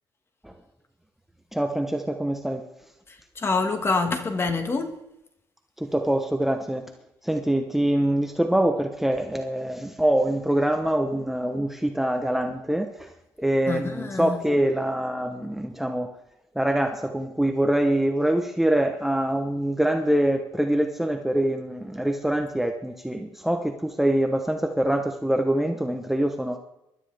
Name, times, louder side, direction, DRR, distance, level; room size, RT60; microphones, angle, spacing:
voice 1, 1.5-2.6 5.8-6.8 7.2-13.1 13.4-16.1 16.6-26.6, right 1 dB, 5° right, 1.0 m, -24 dB
voice 2, 3.3-4.9 13.7-14.4, left 4 dB, 30° left, 1.7 m, -26 dB
24.5 x 12.5 x 3.5 m
cardioid pair, 125°, 8 cm